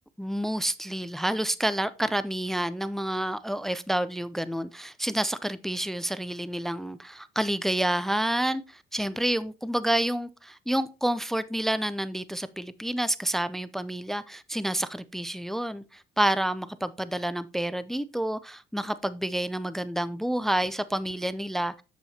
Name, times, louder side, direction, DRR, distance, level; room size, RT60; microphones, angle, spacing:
voice 1, 0.2-21.8, right 1 dB, ahead, 0.3 m, -29 dB
7.6 x 7.0 x 2.8 m
cardioid pair, 110°, 17 cm